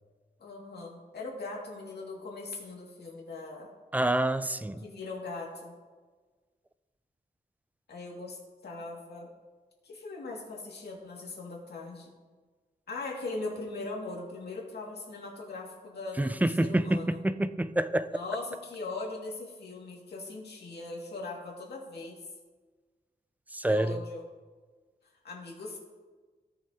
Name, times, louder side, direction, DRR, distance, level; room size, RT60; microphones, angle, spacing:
voice 1, 0.4-3.7 4.8-5.7 7.9-9.3 9.8-12.1 12.9-17.2 18.1-22.2 23.6-24.2 25.2-25.8, left 3 dB, 80° left, 2.2 m, -40 dB
voice 2, 3.9-4.8 16.2-18.2 23.5-24.0, right 1 dB, 10° right, 0.3 m, -27 dB
16.0 x 6.9 x 2.9 m
wide cardioid pair, 115°, 17 cm